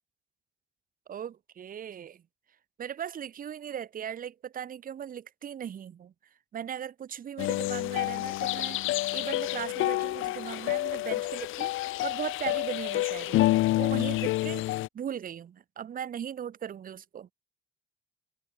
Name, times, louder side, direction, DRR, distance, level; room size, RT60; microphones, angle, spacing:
voice 1, 1.1-2.2 2.8-6.1 6.5-8.8 9.1-11.7 12.0-13.5 13.8-14.6 14.9-17.3, right 9 dB, 45° right, 0.7 m, -38 dB
sound 1, 7.4-14.9, left 17 dB, 90° left, 0.9 m, -28 dB
open air
cardioid pair, 90°, 20 cm